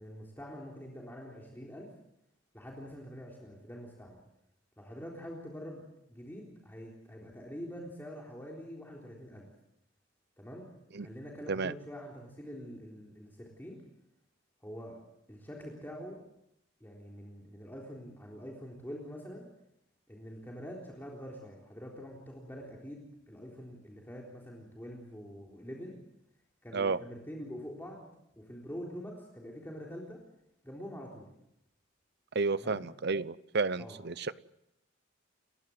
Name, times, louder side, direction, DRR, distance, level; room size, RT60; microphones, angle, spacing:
voice 1, 0.0-1.9 2.5-4.2 4.8-5.8 6.1-9.5 10.4-10.7 11.0-13.8 14.6-15.0 15.3-16.2 16.8-19.5 20.1-26.0 26.6-28.1 28.3-30.2 30.6-31.3 32.6-32.8 33.8-34.0, equal, 10° left, 3.8 m, -45 dB
voice 2, 32.3-34.4, right 4 dB, 55° right, 0.8 m, -31 dB
29.5 x 16.0 x 7.9 m
head